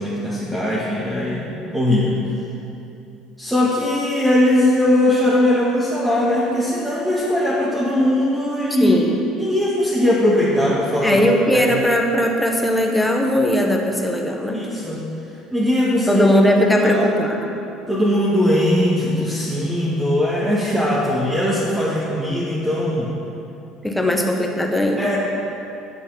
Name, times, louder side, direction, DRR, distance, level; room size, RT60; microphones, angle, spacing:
voice 1, 0.0-2.2 3.4-9.0 9.3-11.2 11.5-11.7 14.5-15.1 15.5-16.3 16.8-17.1 17.9-23.1 25.0-25.2, left 1 dB, 10° right, -7 dB, 2.0 m, -20 dB
voice 2, 8.8-9.2 11.0-14.7 16.1-17.5 23.8-25.2, equal, 5° left, 1 dB, 1.5 m, -19 dB
10.0 x 6.9 x 5.8 m, 2.8 s
hypercardioid pair, 65°, 0 cm